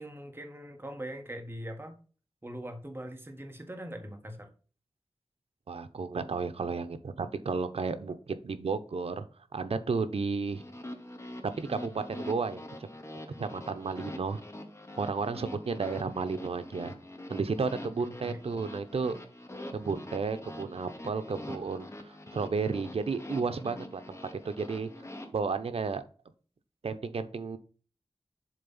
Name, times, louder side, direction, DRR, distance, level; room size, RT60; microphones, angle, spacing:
voice 1, 0.0-2.0 2.4-4.5 18.2-18.6, equal, 20° right, 5 dB, 1.6 m, -41 dB
voice 2, 5.7-9.2 9.5-10.6 11.6-12.9 13.4-14.4 15.0-16.9 17.3-19.2 19.7-24.2 24.4-24.9 25.3-26.0 26.8-27.6, right 4 dB, 80° right, 9 dB, 0.8 m, -33 dB
sound 1, 10.5-25.3, left 1 dB, 30° left, 1.5 m, -44 dB
7.4 x 3.5 x 5.7 m, 0.39 s
wide cardioid pair, 80°, 10 cm